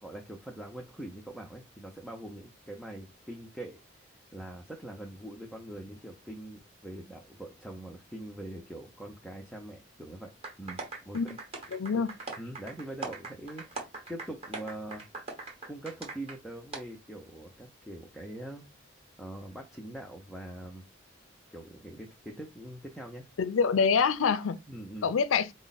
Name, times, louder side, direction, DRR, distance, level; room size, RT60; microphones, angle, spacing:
voice 1, 0.0-4.0 4.3-11.4 11.9-12.0 12.4-15.1 15.7-18.7 19.2-20.8 21.5-23.3 24.7-25.1, right 1 dB, ahead, 0.5 m, -43 dB
sound 1, 10.4-16.4 16.7-16.8, right 3 dB, 30° right, 1.1 m, -41 dB
voice 2, 11.7-12.1 23.4-24.6 25.0-25.5, left 5 dB, 80° left, 0.5 m, -26 dB
4.5 x 2.1 x 4.0 m
head